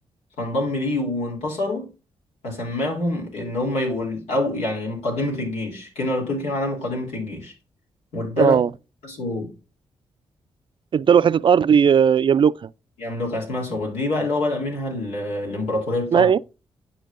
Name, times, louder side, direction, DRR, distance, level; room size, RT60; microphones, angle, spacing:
voice 1, 0.4-1.9 2.4-7.5 8.1-8.6 9.0-9.5 13.0-16.3, left 1 dB, 85° left, 3.1 m, -26 dB
voice 2, 8.4-8.7 10.9-12.7 16.1-16.4, right 7 dB, 50° right, 0.4 m, -16 dB
11.5 x 4.5 x 2.5 m
supercardioid pair, 55°, 11 cm